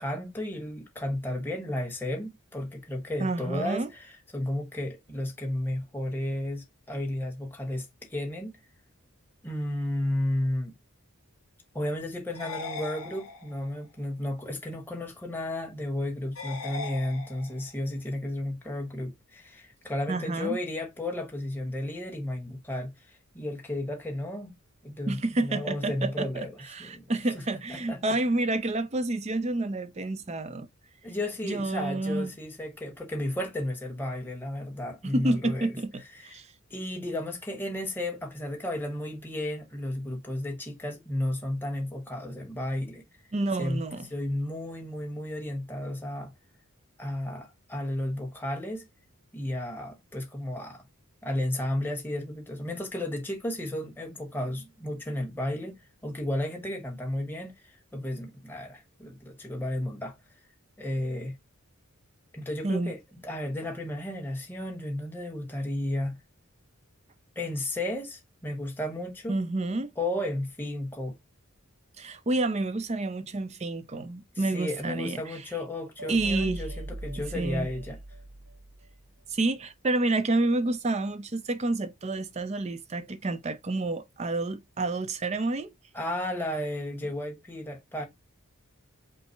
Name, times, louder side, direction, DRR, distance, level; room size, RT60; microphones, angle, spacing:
voice 1, 0.0-8.6 9.4-10.7 11.7-24.5 24.8-26.5 26.8-27.1 27.5-28.2 31.0-35.7 36.1-36.4 36.7-43.0 43.6-43.8 44.1-46.3 47.0-48.9 49.3-50.8 51.2-60.1 60.8-61.4 62.3-63.0 63.2-66.2 67.3-69.4 70.0-71.2 74.3-78.0 85.9-88.0, left 1 dB, 10° left, 1.1 m, -33 dB
voice 2, 3.2-3.9 20.1-20.6 25.1-30.7 31.4-32.3 35.0-36.5 43.3-44.1 62.6-62.9 69.3-69.9 72.0-75.4 76.1-76.6 77.3-77.7 79.3-85.7, right 2 dB, 30° right, 0.5 m, -29 dB
sound 1, 12.3-13.8 16.3-17.8, left 4 dB, 80° left, 1.8 m, -39 dB
sound 2, 76.0-79.2, right 1 dB, 75° right, 0.8 m, -40 dB
5.4 x 2.0 x 4.3 m
head